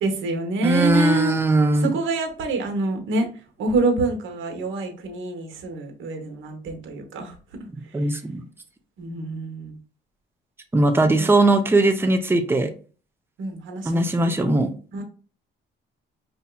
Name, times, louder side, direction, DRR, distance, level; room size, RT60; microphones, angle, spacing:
voice 1, 0.0-1.3 1.8-3.3 3.6-7.3 7.8-8.2 9.0-9.8 11.0-11.3 13.4-14.3 14.9-15.0, right 3 dB, 75° right, 4 dB, 1.1 m, -26 dB
voice 2, 0.6-1.9 7.9-8.4 10.7-12.7 13.8-14.7, right 2 dB, 10° right, 6 dB, 0.6 m, -19 dB
5.3 x 2.7 x 2.3 m, 0.38 s
cardioid pair, 90°, 20 cm